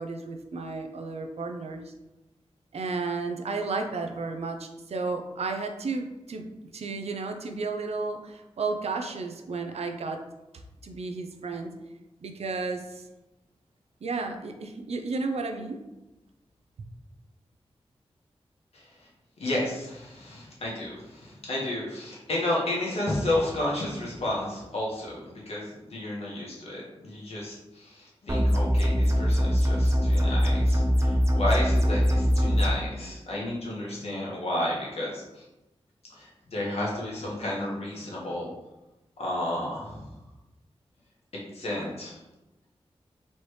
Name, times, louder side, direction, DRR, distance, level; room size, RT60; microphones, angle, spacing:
voice 1, 0.0-1.9 2.7-6.4 6.7-10.2 10.8-11.7 12.2-13.0 14.0-15.8, right 3 dB, 75° right, 5 dB, 0.5 m, -33 dB
voice 2, 18.7-19.1 19.4-35.4 36.1-38.5 39.2-40.1 41.5-42.2, left 1 dB, 75° left, -5 dB, 1.4 m, -32 dB
sound 1, 28.3-32.7, equal, 25° right, 0.6 m, -22 dB
4.2 x 3.2 x 3.2 m, 0.98 s
wide cardioid pair, 65°, 11 cm